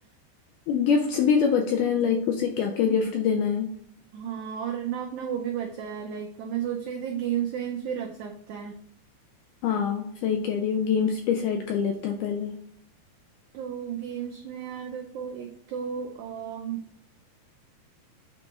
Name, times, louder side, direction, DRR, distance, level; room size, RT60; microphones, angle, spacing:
voice 1, 0.7-3.7 9.6-12.6, left 6 dB, 80° left, 3 dB, 1.8 m, -24 dB
voice 2, 4.1-8.8 13.5-16.8, right 9 dB, 90° right, 1 dB, 1.7 m, -33 dB
8.7 x 3.7 x 3.7 m, 0.64 s
omnidirectional pair, 4.3 m